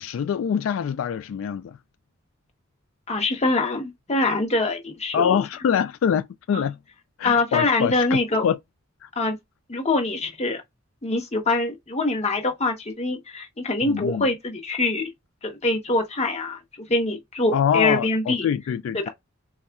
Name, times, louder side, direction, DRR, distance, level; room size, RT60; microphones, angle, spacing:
voice 1, 0.0-1.8 5.1-6.8 7.2-8.6 9.0-9.1 13.9-14.3 17.5-19.1, left 8 dB, 85° left, 0.3 m, -24 dB
voice 2, 3.1-5.4 6.5-6.6 7.2-8.4 9.2-9.4 9.7-10.6 11.0-15.1 15.4-18.5 18.9-19.1, left 2 dB, 35° left, 0.9 m, -24 dB
4.1 x 2.3 x 2.3 m
head